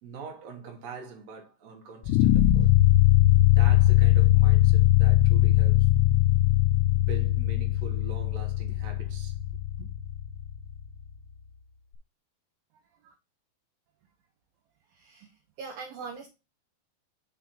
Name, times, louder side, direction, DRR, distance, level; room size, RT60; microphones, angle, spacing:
voice 1, 0.0-2.7 3.4-5.9 6.9-9.9, right 4 dB, 55° right, 2.1 m, -44 dB
sound 1, 2.0-11.2, left 14 dB, 90° left, 2.9 m, -21 dB
voice 2, 14.9-15.3 15.6-16.3, right 5 dB, 75° right, 2.2 m, -41 dB
6.8 x 3.6 x 6.0 m
omnidirectional pair, 5.1 m